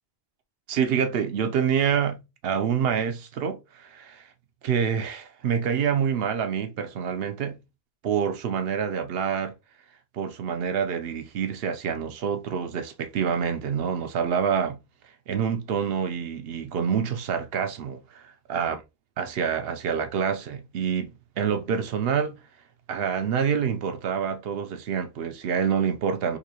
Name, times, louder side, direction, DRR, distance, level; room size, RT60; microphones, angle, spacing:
voice 1, 0.7-4.3 4.6-7.6 8.0-9.5 10.1-14.8 15.3-18.8 19.2-22.4 22.9-26.4, right 7 dB, 75° right, 0.8 m, -27 dB
3.8 x 2.7 x 2.8 m
omnidirectional pair, 1.0 m